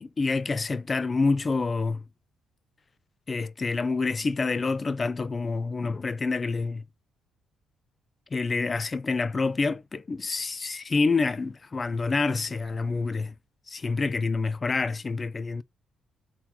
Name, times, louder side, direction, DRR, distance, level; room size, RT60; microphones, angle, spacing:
voice 1, 0.0-2.0 3.3-6.8 8.3-13.3 13.7-15.6, left 4 dB, 30° left, 0.4 m, -27 dB
3.9 x 2.7 x 4.3 m
cardioid pair, 90°, 0 cm